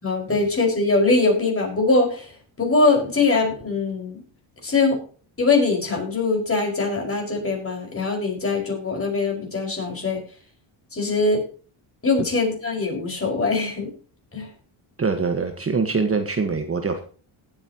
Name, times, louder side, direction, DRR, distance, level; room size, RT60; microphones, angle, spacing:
voice 1, 0.0-2.3 2.6-4.2 4.6-5.0 5.4-10.2 10.9-11.4 12.0-13.9 14.3-14.5, left 3 dB, 25° left, 2 dB, 5.4 m, -22 dB
voice 2, 15.0-17.0, right 4 dB, 25° right, 6 dB, 1.5 m, -23 dB
19.0 x 8.8 x 3.0 m, 0.40 s
cardioid pair, 105°, 50 cm